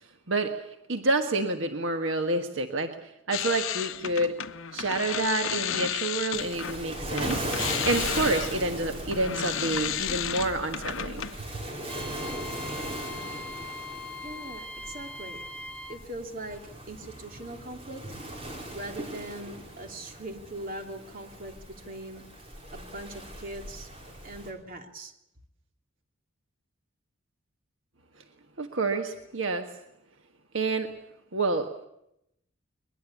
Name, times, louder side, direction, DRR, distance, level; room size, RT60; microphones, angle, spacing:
voice 1, 0.3-0.6 0.9-4.4 4.7-11.2 28.6-29.7 30.5-30.9 31.3-31.9, right 2 dB, 70° right, 6 dB, 1.5 m, -28 dB
sound 1, 3.3-6.8 7.1-11.4, left 9 dB, 80° left, 1.0 m, -33 dB
Waves surf, 6.3-24.5, right 1 dB, 30° right, 5.4 m, -38 dB
Wind instrument woodwind instrument, 11.9-16.0, left 3 dB, 5° left, 1.7 m, -41 dB
voice 2, 13.9-15.4 15.9-18.0 18.7-23.9 24.2-25.1, right 1 dB, 45° right, 4 dB, 3.0 m, -41 dB
22.0 x 22.0 x 8.4 m, 0.80 s
head